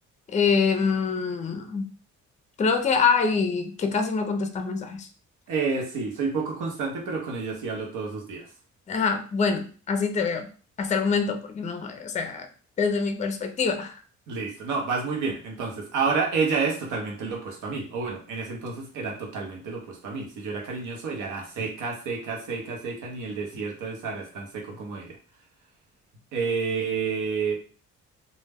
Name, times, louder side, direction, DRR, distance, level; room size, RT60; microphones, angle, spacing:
voice 1, 0.3-1.9 2.6-5.1 8.9-10.5 10.8-12.5 12.8-14.0, left 5 dB, 25° left, 6 dB, 0.4 m, -25 dB
voice 2, 5.5-8.5 14.3-25.2 26.3-27.6, right 4 dB, 85° right, 1 dB, 0.8 m, -30 dB
2.2 x 2.1 x 3.3 m, 0.40 s
cardioid pair, 90°, 30 cm